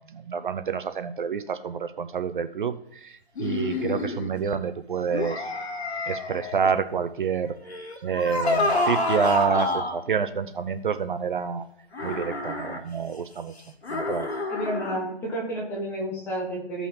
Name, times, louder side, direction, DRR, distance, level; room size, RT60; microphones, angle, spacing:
voice 1, 0.0-2.7 3.0-5.4 6.1-7.6 8.0-11.6 12.0-13.5 13.9-14.3, right 6 dB, 50° right, 10 dB, 0.6 m, -28 dB
sound 1, 3.4-4.3 5.1-6.7 7.7-10.0 11.9-12.8 13.8-15.0, left 2 dB, 75° left, 2.1 m, -28 dB
voice 2, 14.5-16.9, right 1 dB, 5° left, 0 dB, 0.9 m, -31 dB
15.5 x 5.6 x 2.9 m, 0.74 s
hypercardioid pair, 160°, 33 cm